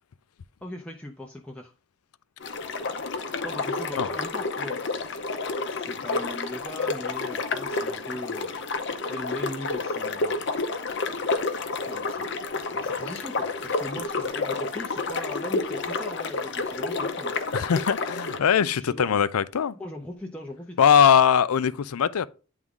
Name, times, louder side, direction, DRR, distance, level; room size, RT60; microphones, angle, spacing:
voice 1, 0.6-1.7 3.4-4.8 5.7-10.4 11.6-17.3 18.6-19.2 19.7-20.8, left 1 dB, 5° left, 0.6 m, -39 dB
sound 1, 2.4-18.4, left 3 dB, 50° left, 0.7 m, -30 dB
voice 2, 17.5-19.7 20.8-22.3, left 8 dB, 90° left, 0.4 m, -21 dB
9.4 x 3.6 x 3.7 m
head